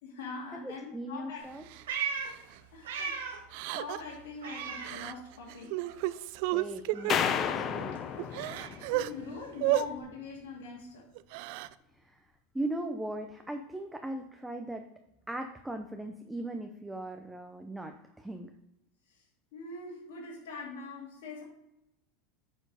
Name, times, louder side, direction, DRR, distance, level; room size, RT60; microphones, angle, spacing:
voice 1, 0.0-1.5 2.7-3.5 3.7-5.8 8.8-11.1 19.1-19.3 19.5-21.4, left 4 dB, 75° left, -3 dB, 2.3 m, -43 dB
voice 2, 0.6-1.6 6.5-8.0 12.0-12.2 12.5-14.9 15.3-18.5, right 1 dB, 5° right, 5 dB, 0.7 m, -38 dB
Meow, 1.4-3.5 3.8-5.6 5.8-10.0, right 6 dB, 85° right, 1.5 m, -40 dB
Crying sobbing, 1.7-1.8 2.3-2.5 3.5-4.1 4.8-5.1 5.5-7.2 7.8-7.9 8.2-9.1 9.6-9.9 11.1-11.7, right 16 dB, 65° right, 0.4 m, -32 dB
sound 1, 7.1-9.4, left 8 dB, 35° left, 0.7 m, -32 dB
9.0 x 4.5 x 4.9 m, 0.87 s
supercardioid pair, 115°, 0 cm